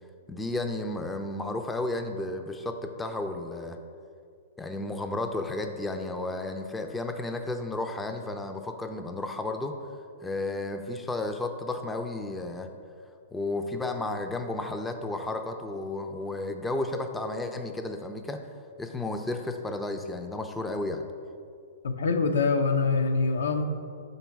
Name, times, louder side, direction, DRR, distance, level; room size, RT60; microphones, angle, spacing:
voice 1, 0.3-3.8 4.6-9.7 10.2-12.7 13.3-18.4 18.8-21.0, left 2 dB, 10° left, 6 dB, 0.4 m, -33 dB
voice 2, 21.8-23.6, left 4 dB, 80° left, 6 dB, 0.5 m, -24 dB
5.5 x 4.0 x 4.6 m, 2.3 s
hypercardioid pair, 125°, 0 cm